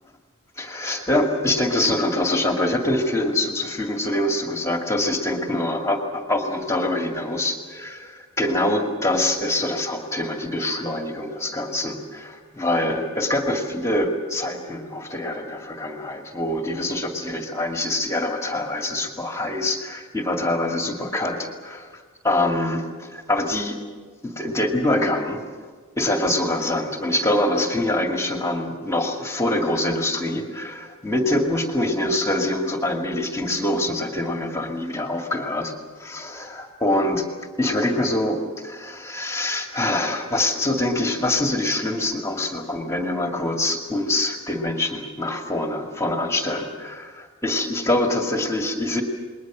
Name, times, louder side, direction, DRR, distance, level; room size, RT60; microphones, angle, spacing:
voice 1, 0.6-23.8 24.2-25.4 26.0-35.7 36.0-37.3 37.6-49.0, left 1 dB, 15° left, 2 dB, 2.2 m, -24 dB
28.5 x 21.5 x 6.3 m, 1.5 s
head